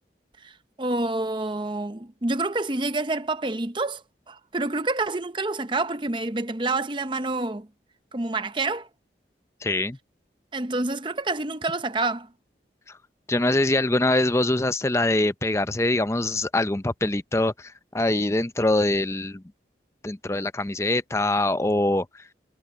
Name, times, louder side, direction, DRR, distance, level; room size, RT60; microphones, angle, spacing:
voice 1, 0.4-4.0 4.3-7.7 8.1-8.9 10.5-12.3, right 2 dB, 25° right, 0.8 m, -28 dB
voice 2, 9.6-10.0 13.3-19.4 20.0-22.1, left 2 dB, 15° left, 0.6 m, -23 dB
head